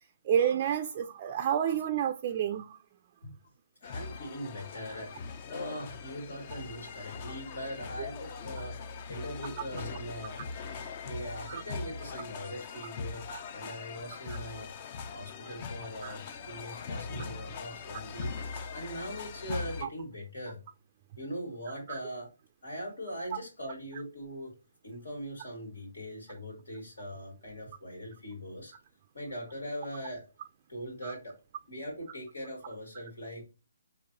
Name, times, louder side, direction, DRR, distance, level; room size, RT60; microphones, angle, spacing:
voice 1, 0.3-2.7 11.5-11.6 13.3-13.4 14.3-14.4 16.0-16.2 19.8-19.9 21.9-22.0 31.0-31.1, right 9 dB, 35° right, 0.4 m, -29 dB
voice 2, 3.8-8.7 9.1-10.4 11.0-13.2 13.5-14.7 15.1-18.3 18.7-20.6 21.2-22.3 22.6-24.5 24.8-28.7 29.1-30.3 30.7-31.4 31.7-33.4, equal, 75° left, 1.9 m, -41 dB
sound 1, 3.8-19.8, left 5 dB, 35° left, 0.5 m, -41 dB
5.2 x 2.6 x 2.7 m
hypercardioid pair, 150°, 0 cm